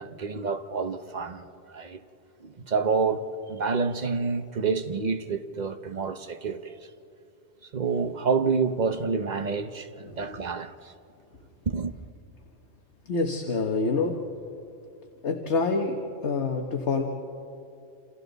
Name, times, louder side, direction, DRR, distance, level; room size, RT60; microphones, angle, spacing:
voice 1, 0.0-2.0 2.4-6.8 7.7-10.9 11.7-11.9, right 5 dB, 40° right, 0.9 m, -28 dB
voice 2, 13.1-14.2 15.2-17.0, left 4 dB, 60° left, 1.5 m, -26 dB
28.5 x 28.0 x 4.0 m
omnidirectional pair, 1.3 m